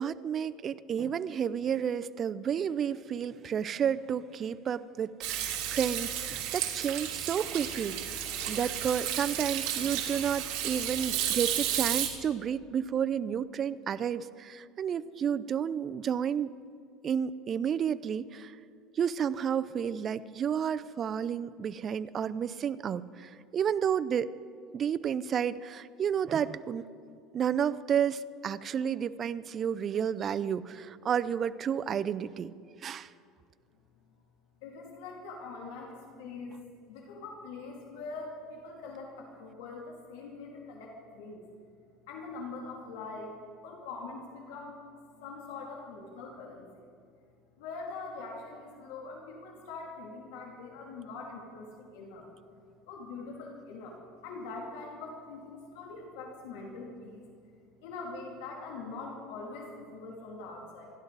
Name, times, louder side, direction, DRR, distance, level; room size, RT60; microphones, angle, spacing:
voice 1, 0.0-16.5 17.0-18.5 19.0-24.3 24.7-26.9 27.3-32.5 32.8-33.1, right 8 dB, 30° right, 13 dB, 0.5 m, -31 dB
Hands / Sink (filling or washing), 5.2-12.1, right 10 dB, 70° right, 2.8 m, -33 dB
voice 2, 34.6-36.5 36.9-41.4 42.1-43.3 43.6-44.8 45.2-46.9 47.6-52.3 52.9-54.0 54.2-57.3 57.8-60.9, left 3 dB, 85° left, -1 dB, 2.5 m, -43 dB
28.0 x 12.0 x 4.1 m, 2.3 s
cardioid pair, 140°, 0 cm